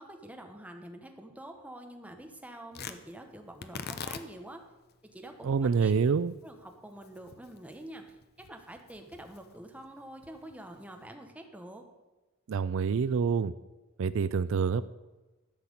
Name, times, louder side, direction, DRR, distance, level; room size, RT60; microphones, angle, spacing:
voice 1, 0.0-4.6 5.1-5.9 6.4-11.8, right 1 dB, 5° right, 4 dB, 1.2 m, -47 dB
Tearing, 2.7-11.1, left 6 dB, 50° left, 0.7 m, -46 dB
voice 2, 5.4-6.3 12.5-13.5 14.0-14.8, right 5 dB, 65° right, 15 dB, 0.4 m, -27 dB
12.5 x 5.9 x 8.1 m, 1.1 s
head